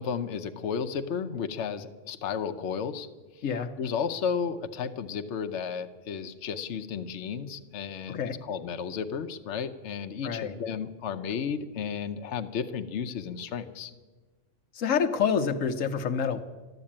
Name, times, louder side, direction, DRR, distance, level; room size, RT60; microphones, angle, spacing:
voice 1, 0.0-3.1 3.4-3.5 3.8-13.9, left 6 dB, 65° left, 7 dB, 1.0 m, -33 dB
voice 2, 3.4-3.7 8.1-8.4 10.2-10.5 14.7-16.4, left 6 dB, 85° left, 8 dB, 1.2 m, -27 dB
13.0 x 12.0 x 8.7 m, 1.3 s
omnidirectional pair, 1.3 m